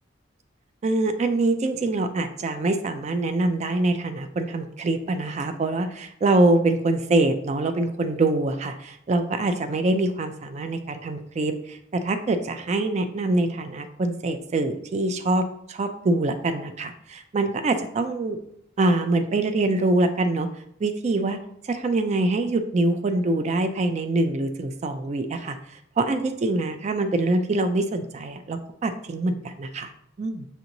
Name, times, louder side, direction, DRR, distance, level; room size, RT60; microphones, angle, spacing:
voice 1, 0.8-18.4 18.8-20.5 20.8-21.4 21.6-25.6 26.0-29.9 30.2-30.5, right 2 dB, 35° right, 8 dB, 0.3 m, -24 dB
7.0 x 2.9 x 2.6 m, 0.73 s
head